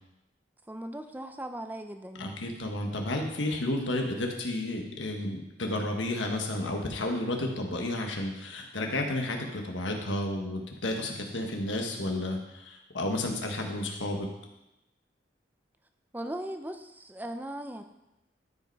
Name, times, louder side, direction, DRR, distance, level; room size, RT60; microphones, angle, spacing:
voice 1, 0.7-2.4 16.1-17.8, right 1 dB, 10° right, 7 dB, 0.6 m, -38 dB
voice 2, 2.2-14.3, left 1 dB, 90° left, 2 dB, 1.5 m, -32 dB
12.5 x 5.2 x 4.7 m, 0.91 s
head